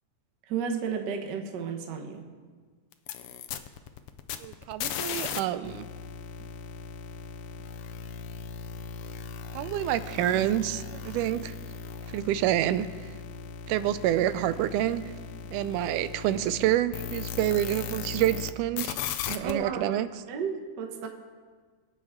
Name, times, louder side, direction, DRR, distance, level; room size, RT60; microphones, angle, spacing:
voice 1, 0.5-2.3 19.4-21.1, right 6 dB, 60° right, 3 dB, 1.1 m, -33 dB
sound 1, 2.9-5.4 5.6-18.5 18.8-19.5, left 7 dB, 80° left, 1.4 m, -38 dB
voice 2, 4.4-5.9 9.5-11.5 12.1-13.1 13.7-15.0 15.5-19.0 19.3-20.1, right 12 dB, 90° right, 13 dB, 2.1 m, -28 dB
23.5 x 8.6 x 3.6 m, 1.5 s
omnidirectional pair, 3.5 m